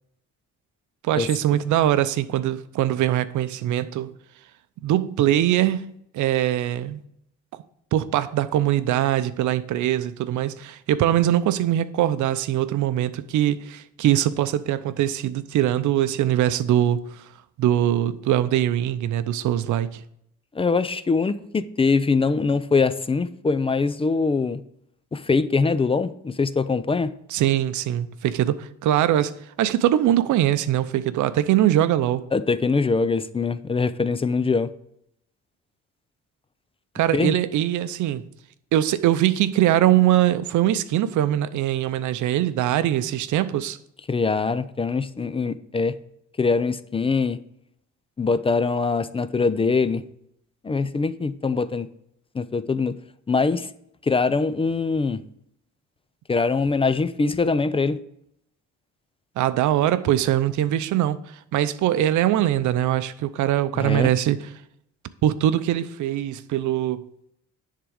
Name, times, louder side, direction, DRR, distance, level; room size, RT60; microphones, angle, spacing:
voice 1, 1.0-4.1 4.8-7.0 7.9-17.0 17.6-20.0 27.3-29.3 29.6-32.2 36.9-38.2 38.7-43.8 59.4-61.2 61.5-64.4 65.2-67.0, right 12 dB, 75° right, 0.6 m, -22 dB
voice 2, 20.5-24.6 25.1-27.1 32.3-34.7 37.1-37.3 44.1-46.0 46.4-47.4 48.2-50.0 50.6-51.9 52.3-52.9 53.3-53.7 54.0-55.2 56.3-58.0 63.7-64.1, left 4 dB, 20° left, 0.4 m, -23 dB
10.0 x 3.8 x 4.8 m
cardioid pair, 90°, 30 cm